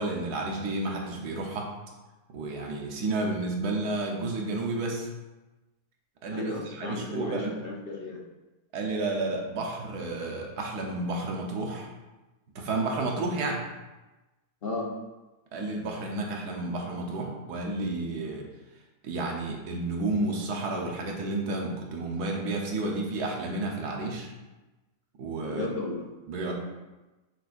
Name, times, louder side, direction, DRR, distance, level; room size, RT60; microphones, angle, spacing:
voice 1, 0.0-1.7 2.3-5.1 6.2-7.5 8.7-11.9 12.5-13.6 15.5-18.4 19.0-24.3 25.2-25.7 26.3-26.5, right 2 dB, 80° right, 0 dB, 1.5 m, -31 dB
voice 2, 6.3-8.2 13.2-13.3 14.6-14.9 25.4-26.0, left 2 dB, 45° left, -1 dB, 0.9 m, -34 dB
6.7 x 6.1 x 2.5 m, 1.1 s
omnidirectional pair, 1.7 m